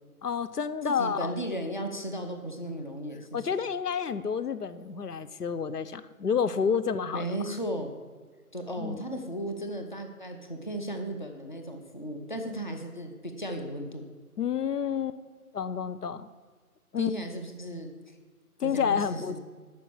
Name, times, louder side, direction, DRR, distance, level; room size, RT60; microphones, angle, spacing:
voice 1, 0.2-1.3 3.3-7.3 8.8-9.0 14.4-15.2 15.5-16.3 16.9-17.1 18.6-19.4, left 7 dB, 90° left, 13 dB, 0.7 m, -29 dB
voice 2, 0.8-3.5 7.1-7.9 8.5-14.1 17.0-18.2 18.6-19.4, right 1 dB, 30° left, 4 dB, 0.7 m, -35 dB
8.8 x 6.1 x 7.1 m, 1.5 s
figure-of-eight pair, 165°, 46 cm